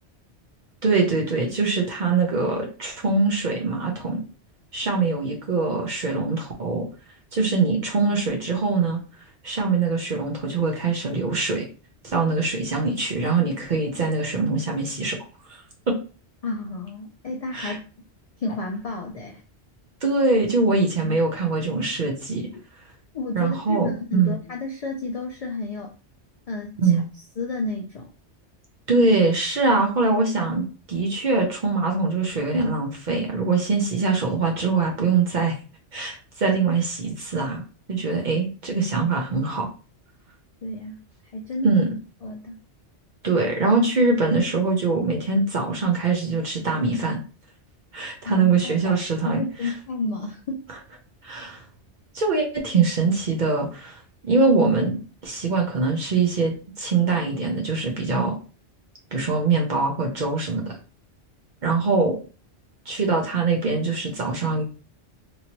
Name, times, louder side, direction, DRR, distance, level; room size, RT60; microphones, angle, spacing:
voice 1, 0.8-4.2 4.7-6.8 7.3-9.0 9.4-11.7 12.0-15.2 15.5-15.6 15.9-16.0 17.5-17.8 20.0-22.4 23.3-24.4 26.8-27.0 28.9-35.5 35.9-37.6 37.9-39.7 41.6-41.9 43.2-47.2 47.9-49.4 51.2-51.6 52.1-58.4 59.1-60.8 61.6-62.2 62.9-64.6, right 4 dB, 50° right, 1 dB, 0.7 m, -23 dB
voice 2, 16.4-17.8 18.4-19.4 20.7-20.8 21.0-21.2 23.1-25.9 26.5-27.0 27.4-28.1 40.6-41.0 41.2-41.7 42.2-42.6 48.2-50.7, left 2 dB, 60° left, 1 dB, 0.3 m, -31 dB
3.0 x 2.6 x 2.9 m, 0.35 s
omnidirectional pair, 1.2 m